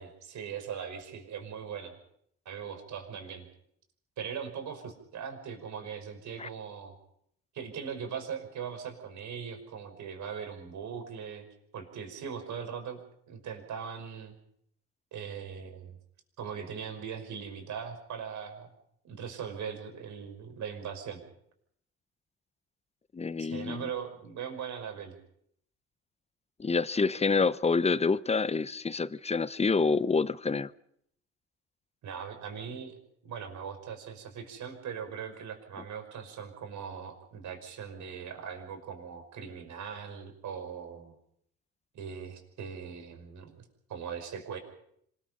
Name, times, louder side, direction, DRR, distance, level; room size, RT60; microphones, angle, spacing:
voice 1, 0.0-1.9 2.5-3.5 4.2-6.9 7.5-11.5 11.7-14.3 15.1-16.0 16.4-18.7 19.0-21.2 23.4-25.2 32.0-32.9 33.2-41.1 41.9-43.6 43.9-44.6, right 7 dB, 55° right, 5.6 m, -40 dB
voice 2, 23.1-23.9 26.6-30.7, left 4 dB, 20° left, 0.9 m, -27 dB
26.0 x 20.5 x 5.7 m
hypercardioid pair, 65°, 34 cm